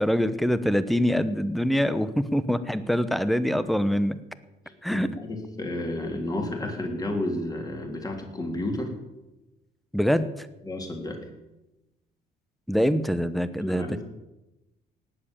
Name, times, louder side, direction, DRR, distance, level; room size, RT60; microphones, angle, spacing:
voice 1, 0.0-4.2 4.8-5.1 9.9-10.5 12.7-14.0, equal, ahead, 13 dB, 1.0 m, -24 dB
voice 2, 4.9-9.0 10.6-11.2 13.6-14.0, left 1 dB, 20° left, 2 dB, 3.6 m, -31 dB
18.5 x 7.7 x 8.9 m, 0.99 s
cardioid pair, 110°, 17 cm